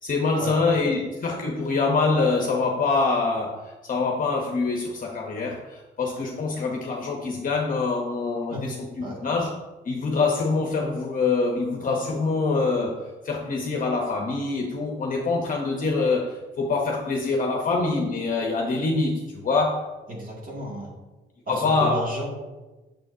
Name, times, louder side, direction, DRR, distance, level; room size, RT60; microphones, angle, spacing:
voice 1, 0.0-9.5 9.8-19.9 21.5-22.0, left 3 dB, 45° left, 0 dB, 0.8 m, -25 dB
voice 2, 20.1-20.9 21.5-22.3, equal, 45° right, -2 dB, 2.0 m, -32 dB
6.8 x 6.3 x 2.7 m, 1.1 s
cardioid pair, 90°, 20 cm